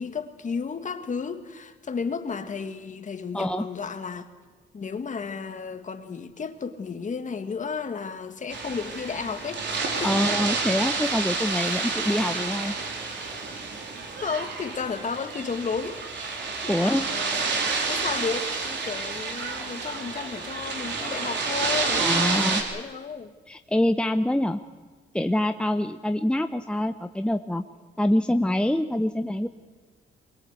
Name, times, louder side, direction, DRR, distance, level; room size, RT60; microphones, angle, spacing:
voice 1, 0.0-4.3 4.7-9.6 10.0-10.3 14.2-23.3, left 5 dB, 40° left, 1.9 m, -33 dB
voice 2, 3.3-3.6 10.0-12.7 16.7-17.1 22.0-22.6 23.5-24.6 25.1-27.6 28.0-29.5, left 1 dB, 5° left, 0.8 m, -25 dB
sound 1, 8.5-22.6, right 4 dB, 65° right, 4.0 m, -29 dB
22.0 x 21.5 x 8.2 m
cardioid pair, 90°, 20 cm